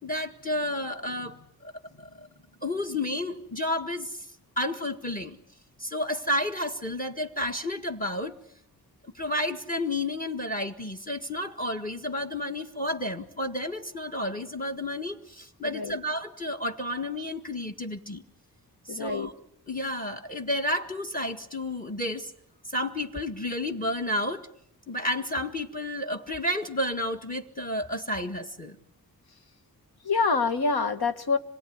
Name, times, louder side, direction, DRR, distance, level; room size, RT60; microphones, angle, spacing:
voice 1, 0.0-2.3 2.6-4.3 4.6-5.4 5.8-8.3 9.1-18.2 18.8-19.3 19.7-22.3 22.7-24.5 24.9-28.8, left 1 dB, 20° left, 9 dB, 1.8 m, -31 dB
voice 2, 15.6-16.0 18.9-19.3 30.0-31.4, left 4 dB, 90° left, 7 dB, 1.8 m, -26 dB
26.5 x 21.5 x 9.5 m, 0.70 s
wide cardioid pair, 140°, 37 cm